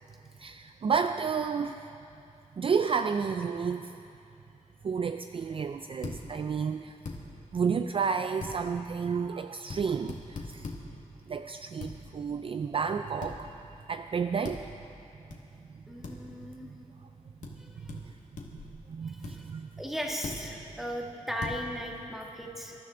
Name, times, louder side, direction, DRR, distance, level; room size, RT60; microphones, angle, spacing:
voice 1, 0.4-1.9 2.6-4.0 4.8-7.0 7.5-10.7 11.3-13.5 13.9-14.7 17.9-18.0 18.5-18.6 18.9-19.7, right 6 dB, 40° right, 8 dB, 0.3 m, -31 dB
sound 1, 6.0-6.2 7.0-7.2 8.4-8.6 9.7-9.8 10.1-10.8 11.8-11.9 13.2-13.4 14.4-14.6 15.3-15.4 16.0-16.1 17.4-17.5 17.9-18.0 18.4-18.7 19.2-19.3 20.2-20.4 21.4-21.6, left 4 dB, 65° left, 1.7 m, -38 dB
voice 2, 15.9-16.7 17.6-17.9 19.0-19.5 19.8-22.7, equal, ahead, 0 dB, 1.6 m, -37 dB
25.5 x 13.0 x 3.8 m, 2.7 s
wide cardioid pair, 165°, 14 cm